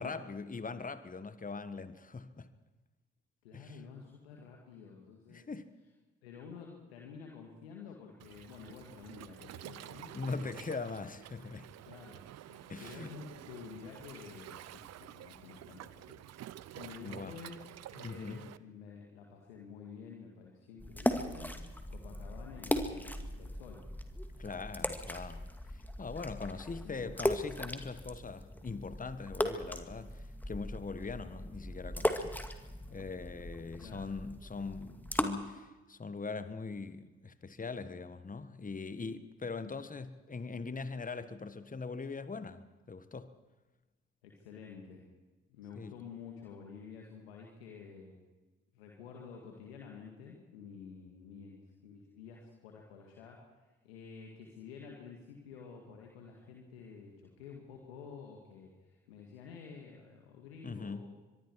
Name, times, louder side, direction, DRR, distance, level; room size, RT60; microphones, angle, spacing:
voice 1, 0.0-2.5 3.5-3.8 5.3-5.7 10.1-11.7 12.7-13.1 17.0-17.3 18.0-18.4 24.4-32.3 32.9-43.3 45.7-45.9 60.6-61.1, left 4 dB, 25° left, 12 dB, 1.5 m, -41 dB
voice 2, 3.4-5.5 6.2-10.6 11.9-12.2 12.4-16.2 16.8-17.6 17.9-21.6 21.9-23.8 26.4-27.2 33.8-34.1 44.2-45.0 45.5-48.2 48.7-53.5 53.8-61.1, left 6 dB, 85° left, 0 dB, 2.1 m, -50 dB
Waves surf, 8.2-18.6, right 12 dB, 60° right, 0.8 m, -50 dB
sound 1, 20.8-35.3, left 1 dB, 5° left, 2.3 m, -38 dB
25.0 x 22.5 x 4.8 m, 1.2 s
hypercardioid pair, 40°, 30 cm